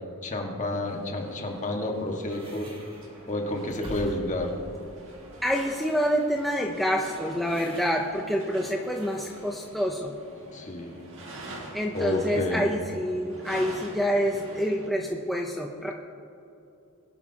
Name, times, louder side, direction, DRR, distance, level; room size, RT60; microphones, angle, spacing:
voice 1, 0.2-2.7 3.3-4.5 10.5-11.0 11.9-12.7, left 1 dB, 35° left, 1 dB, 1.7 m, -30 dB
sound 1, 0.9-14.9, right 1 dB, 60° right, 2.1 m, -46 dB
sound 2, 1.9-9.9, equal, 25° right, 2.1 m, -47 dB
voice 2, 5.4-10.2 11.7-15.9, equal, ahead, -1 dB, 0.7 m, -27 dB
21.5 x 11.5 x 2.9 m, 2.8 s
head